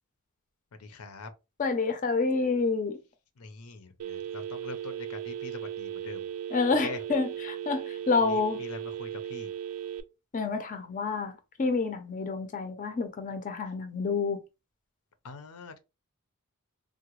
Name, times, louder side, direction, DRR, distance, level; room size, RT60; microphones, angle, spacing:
voice 1, 0.8-1.3 3.4-6.3 6.8-7.0 8.3-9.5 15.2-15.8, left 4 dB, 80° left, 0.6 m, -43 dB
voice 2, 1.6-3.0 6.5-8.6 10.3-11.3 11.6-14.4, left 4 dB, 35° left, 0.5 m, -28 dB
Telephone, 4.0-10.0, right 10 dB, 70° right, 0.4 m, -37 dB
3.7 x 2.1 x 2.9 m
head